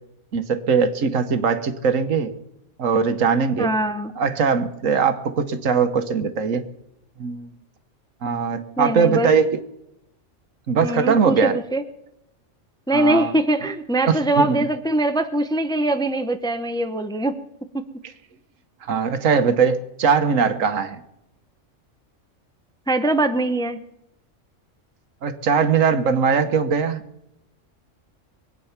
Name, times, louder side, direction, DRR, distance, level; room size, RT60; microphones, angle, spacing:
voice 1, 0.3-2.3 2.8-3.7 4.2-6.6 7.2-7.5 8.2-9.6 10.7-11.6 12.9-13.3 14.1-14.6 18.9-21.0 25.2-27.0, right 6 dB, 90° right, 9 dB, 1.4 m, -20 dB
voice 2, 3.6-4.1 8.8-9.3 10.8-11.8 12.9-17.4 17.7-17.9 22.9-23.8, right 1 dB, 5° left, 8 dB, 0.6 m, -22 dB
22.5 x 9.1 x 5.8 m, 0.84 s
omnidirectional pair, 1.3 m